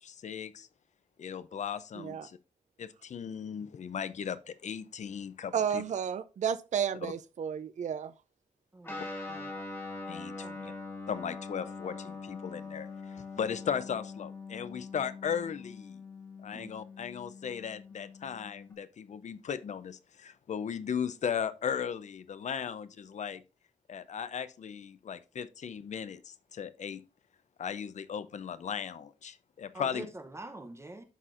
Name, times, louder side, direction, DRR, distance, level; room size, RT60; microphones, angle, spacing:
voice 1, 0.0-0.7 1.2-2.4 2.8-5.8 7.0-7.1 10.1-10.7 11.1-16.0 16.4-23.4 23.9-27.0 27.6-30.1, left 7 dB, 60° left, 0.5 m, -37 dB
voice 2, 2.0-2.3 5.5-8.1, right 8 dB, 60° right, 0.4 m, -32 dB
voice 3, 8.7-9.5 10.4-10.6 16.5-16.7 29.7-31.0, right 2 dB, 20° right, 0.7 m, -45 dB
Guitar, 8.8-18.7, left 3 dB, 15° left, 2.2 m, -43 dB
12.0 x 4.2 x 2.5 m
wide cardioid pair, 175°, 14 cm